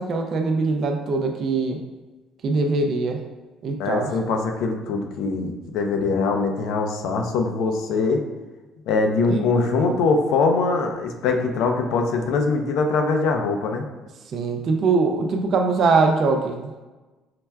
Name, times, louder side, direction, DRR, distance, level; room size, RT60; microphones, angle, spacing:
voice 1, 0.0-1.8 2.4-3.2 3.6-4.1 9.3-10.0 14.3-16.7, right 4 dB, 40° right, 4 dB, 0.3 m, -22 dB
voice 2, 3.8-8.2 8.9-13.9, left 4 dB, 70° left, 4 dB, 0.4 m, -22 dB
5.6 x 2.2 x 2.2 m, 1.2 s
cardioid pair, 160°, 0 cm